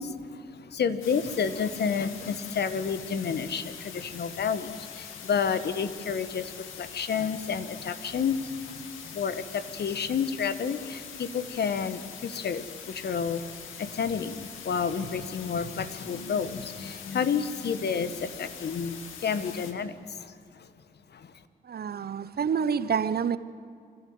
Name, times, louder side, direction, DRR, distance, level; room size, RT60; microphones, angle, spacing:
voice 1, 0.0-20.7 21.1-21.3, left 6 dB, 55° left, 1.4 m, -30 dB
sound 1, 1.0-19.7, left 7 dB, 75° left, 2.0 m, -43 dB
voice 2, 21.6-23.4, right 7 dB, 50° right, 1.0 m, -28 dB
26.0 x 14.0 x 7.9 m
hypercardioid pair, 40°, 21 cm